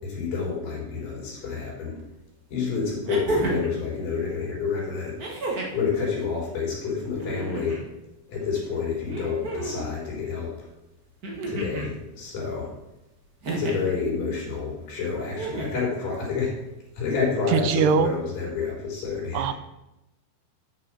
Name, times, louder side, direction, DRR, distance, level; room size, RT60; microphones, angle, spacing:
voice 1, 0.0-2.0 2.5-5.2 5.7-7.8 8.3-10.5 11.5-12.7 13.6-16.5 17.0-19.5, left 5 dB, 55° left, -5 dB, 5.5 m, -29 dB
sound 1, 2.0-2.1 3.1-3.8 5.2-5.9 7.1-7.9 9.1-9.9 11.2-11.9 13.4-13.9 15.3-15.9 17.2-17.3, right 2 dB, 60° right, 0.9 m, -31 dB
voice 2, 17.5-18.1 19.3-19.5, right 6 dB, 80° right, 10 dB, 2.7 m, -21 dB
10.0 x 6.5 x 6.4 m, 0.93 s
omnidirectional pair, 4.7 m